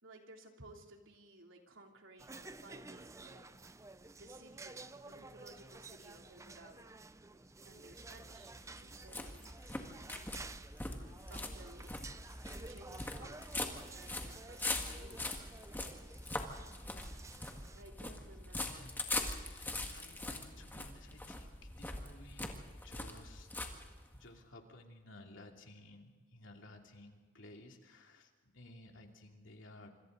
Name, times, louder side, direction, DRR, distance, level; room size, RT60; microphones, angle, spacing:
voice 1, 0.0-3.6 4.1-6.9 7.6-9.5 10.0-10.6 11.3-12.0 12.6-15.6 17.7-18.9, right 1 dB, 80° right, 1 dB, 3.2 m, -58 dB
sound 1, 2.2-17.8, right 3 dB, 15° right, 0.6 m, -52 dB
sound 2, 7.8-24.3, left 2 dB, 10° left, 1.9 m, -43 dB
voice 2, 19.4-23.5 24.1-29.9, left 2 dB, 75° left, 2 dB, 2.8 m, -56 dB
26.0 x 26.0 x 4.0 m, 1.4 s
head